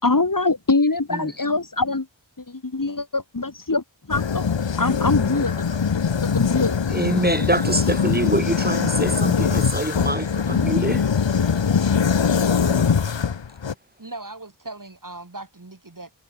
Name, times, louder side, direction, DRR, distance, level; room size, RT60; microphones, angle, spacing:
voice 1, 0.0-2.1 2.5-4.5 4.8-5.7 6.3-6.8, left 3 dB, 45° left, 2.6 m, -23 dB
sound 1, 4.1-13.7, left 6 dB, 70° left, 1.1 m, -22 dB
voice 2, 6.9-11.1 12.6-12.9, right 1 dB, 20° right, 4.4 m, -25 dB
voice 3, 14.0-16.1, right 2 dB, 45° right, 4.2 m, -38 dB
wide cardioid pair, 45°, 46 cm